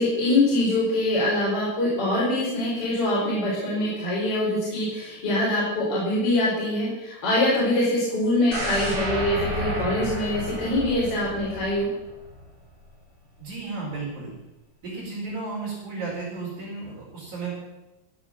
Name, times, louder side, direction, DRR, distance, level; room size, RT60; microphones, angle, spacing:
voice 1, 0.0-11.9, left 1 dB, 35° left, -7 dB, 5.8 m, -24 dB
sound 1, 8.5-12.5 12.8-12.9, equal, 30° right, 4.8 m, -31 dB
voice 2, 13.4-14.3 14.8-17.6, right 3 dB, 55° right, -7 dB, 5.8 m, -33 dB
16.0 x 8.6 x 7.6 m, 1.0 s
omnidirectional pair, 4.3 m